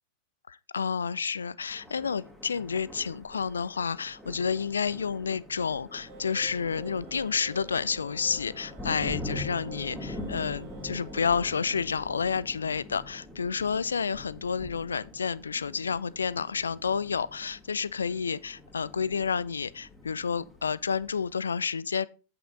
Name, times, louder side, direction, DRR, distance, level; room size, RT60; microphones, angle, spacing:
voice 1, 0.5-22.1, left 6 dB, 70° left, 0.3 m, -30 dB
Thunder, 1.6-21.3, left 2 dB, ahead, 2.2 m, -44 dB
sound 1, 6.1-11.8, right 3 dB, 50° right, 1.2 m, -49 dB
8.8 x 5.7 x 3.8 m
figure-of-eight pair, 90°, 0 cm